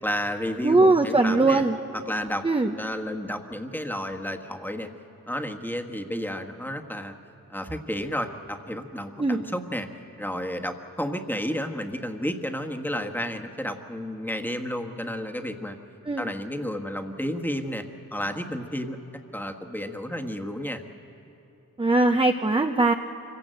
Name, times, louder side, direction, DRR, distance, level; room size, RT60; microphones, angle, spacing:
voice 1, 0.0-1.6 1.9-2.5 2.8-4.9 5.3-7.2 7.5-9.9 10.2-15.8 16.2-17.8 18.1-19.0 19.3-20.8, equal, 5° left, 4 dB, 1.5 m, -31 dB
voice 2, 0.6-1.8 2.4-2.7 9.2-9.4 16.1-16.3 21.8-22.9, right 2 dB, 15° right, 5 dB, 0.7 m, -20 dB
25.0 x 16.5 x 7.9 m, 3.0 s
cardioid pair, 50°, 35 cm